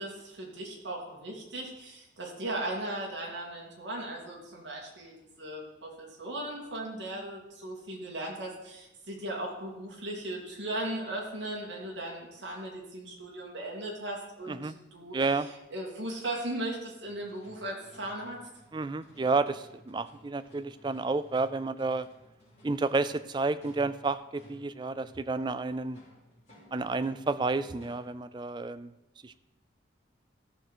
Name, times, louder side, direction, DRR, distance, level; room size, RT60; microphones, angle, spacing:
voice 1, 0.0-15.4 15.7-18.4, right 1 dB, 75° right, -2 dB, 2.5 m, -37 dB
voice 2, 15.1-15.5 18.7-22.1 22.6-26.0 26.7-28.9 29.2-29.4, right 3 dB, 25° right, 13 dB, 0.3 m, -30 dB
sound 1, 17.0-28.3, equal, 35° left, 3.6 m, -57 dB
13.5 x 6.7 x 4.4 m, 0.94 s
head